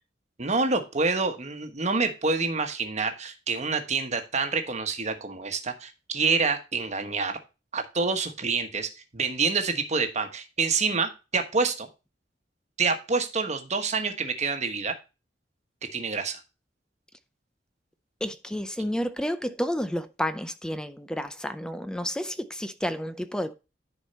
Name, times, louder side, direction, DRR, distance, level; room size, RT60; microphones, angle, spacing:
voice 1, 0.4-7.4 7.7-11.9 12.8-15.0 15.9-16.4, right 4 dB, 40° right, 1.2 m, -27 dB
voice 2, 18.2-23.5, equal, 5° left, 0.5 m, -31 dB
10.0 x 4.6 x 4.2 m
head